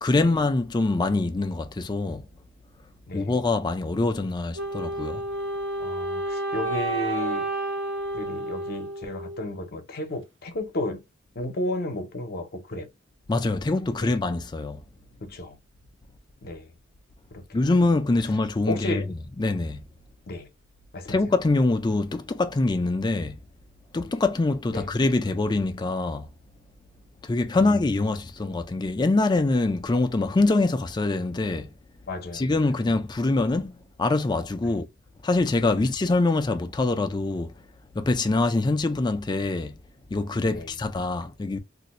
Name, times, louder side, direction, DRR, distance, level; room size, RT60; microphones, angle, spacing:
voice 1, 0.0-2.2 3.1-5.2 13.3-14.8 17.5-19.1 19.4-19.8 21.1-23.4 23.9-26.3 27.2-31.7 32.3-34.9 35.2-37.5 37.9-39.7 40.1-41.6, left 2 dB, 20° left, 0.4 m, -24 dB
Wind instrument woodwind instrument, 4.5-9.6, right 2 dB, 75° right, 0.8 m, -30 dB
voice 2, 5.8-7.5 8.1-11.0 11.4-12.9 14.0-14.1 15.2-15.6 16.4-16.7 17.3-17.7 18.7-19.0 20.3-20.5 20.9-21.2 24.7-24.9 27.5-27.8 32.1-32.7 34.6-34.7 40.5-40.7, left 1 dB, 55° left, 0.7 m, -33 dB
2.5 x 2.2 x 4.0 m
head